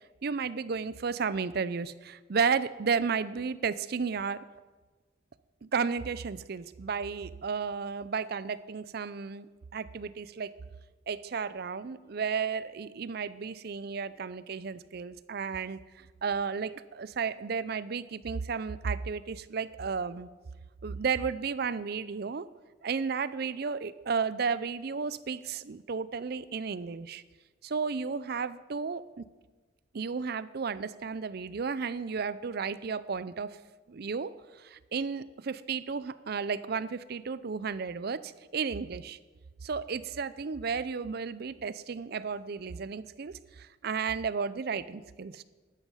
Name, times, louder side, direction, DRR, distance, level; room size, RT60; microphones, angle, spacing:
voice 1, 0.2-4.4 5.6-9.5 9.7-10.5 11.1-20.3 20.8-22.5 22.8-27.2 27.6-29.3 29.9-33.6 33.9-34.3 34.6-39.2 39.6-45.4, right 5 dB, 55° right, 16 dB, 0.5 m, -33 dB
12.0 x 9.9 x 5.6 m, 1.3 s
head